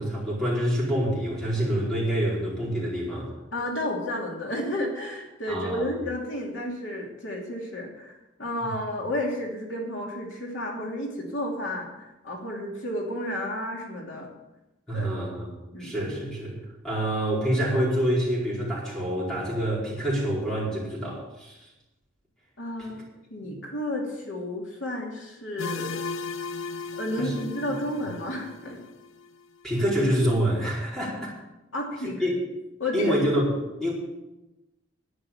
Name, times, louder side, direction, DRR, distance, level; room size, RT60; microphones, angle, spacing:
voice 1, 0.0-3.3 5.5-5.8 8.6-8.7 14.9-15.5 15.8-16.6 16.8-21.6 23.4-23.5 27.2-27.3 29.6-31.3 32.2-32.4 32.9-33.5 33.8-33.9, equal, 5° left, -6 dB, 4.9 m, -26 dB
voice 2, 3.5-8.1 8.4-14.3 14.9-15.0 15.7-15.9 22.6-23.0 23.3-26.0 26.9-28.8 31.7-32.2 32.8-33.2, left 1 dB, 75° left, -1 dB, 2.8 m, -32 dB
sound 1, 25.6-29.3, left 4 dB, 90° left, 0.6 m, -36 dB
11.5 x 9.9 x 7.2 m, 1.0 s
head